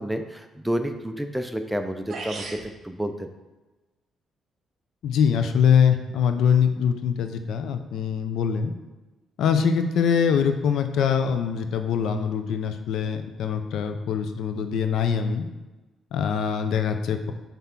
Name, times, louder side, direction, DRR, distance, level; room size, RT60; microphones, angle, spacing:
voice 1, 0.0-3.3, equal, 5° right, 7 dB, 0.5 m, -30 dB
sound 1, 2.1-2.7, right 3 dB, 50° right, 1.1 m, -35 dB
voice 2, 5.0-8.7 9.4-15.5 16.1-17.3, left 7 dB, 75° left, 7 dB, 0.5 m, -23 dB
5.8 x 3.5 x 5.7 m, 1.1 s
cardioid pair, 90°, 0 cm